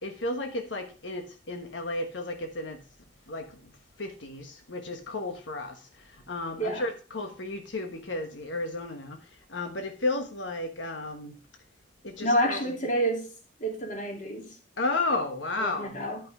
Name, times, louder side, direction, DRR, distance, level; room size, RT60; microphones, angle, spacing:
voice 1, 0.0-2.8 3.3-3.7 4.0-9.2 9.5-11.3 12.0-12.8 14.8-16.0, left 2 dB, 90° left, 1.3 m, -33 dB
voice 2, 12.2-13.3 13.6-14.5 15.6-16.2, right 1 dB, 45° left, 2.6 m, -28 dB
10.5 x 5.8 x 4.9 m
head